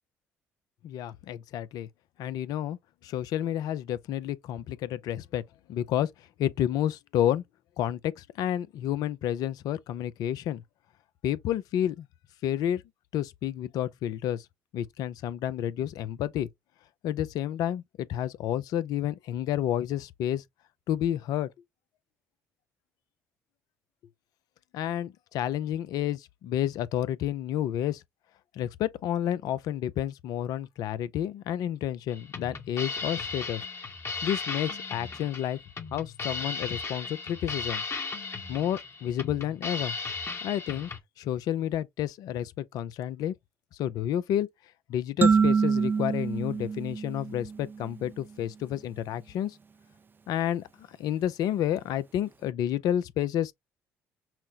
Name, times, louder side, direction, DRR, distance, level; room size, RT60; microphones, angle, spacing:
voice 1, 0.8-1.9 2.2-2.8 3.0-5.4 5.7-6.1 6.4-7.4 7.8-10.6 11.2-12.1 12.4-12.8 13.1-14.5 14.7-16.5 17.0-20.4 20.9-21.5 24.7-28.0 28.5-33.6 34.2-35.6 35.9-37.8 38.5-39.9 40.4-40.9 41.2-43.3 43.8-44.5 44.9-49.6 50.3-53.5, left 11 dB, 65° left, 0.4 m, -30 dB
sound 1, 32.1-41.0, left 4 dB, 40° left, 1.1 m, -36 dB
sound 2, 45.2-47.9, right 5 dB, 30° right, 0.4 m, -25 dB
5.7 x 2.0 x 2.8 m
hypercardioid pair, 55°, 7 cm